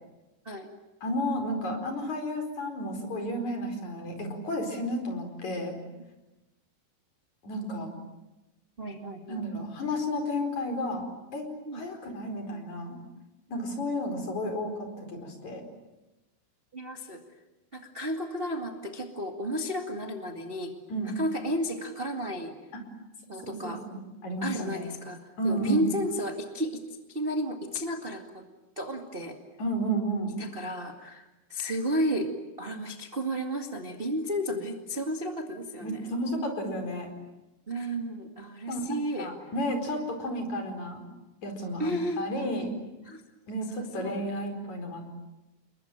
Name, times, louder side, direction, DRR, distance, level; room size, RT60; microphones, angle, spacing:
voice 1, 1.0-5.7 7.4-7.9 9.3-11.1 11.3-11.5 11.7-13.0 13.5-15.6 20.9-21.1 23.3-24.0 24.2-24.8 25.4-25.8 29.6-30.4 35.8-37.1 38.7-41.0 41.4-42.7 43.5-45.1, equal, 40° left, 4 dB, 5.6 m, -32 dB
voice 2, 8.8-9.4 11.6-11.8 16.7-17.2 17.7-20.7 21.0-22.6 23.3-23.8 24.4-25.2 25.4-26.8 27.1-28.4 28.7-29.4 30.4-36.1 37.7-39.3 40.3-40.4 41.8-42.4 43.0-43.2 44.0-44.2, equal, 35° right, 3 dB, 0.9 m, -32 dB
30.0 x 22.0 x 9.1 m, 1.0 s
omnidirectional pair, 5.1 m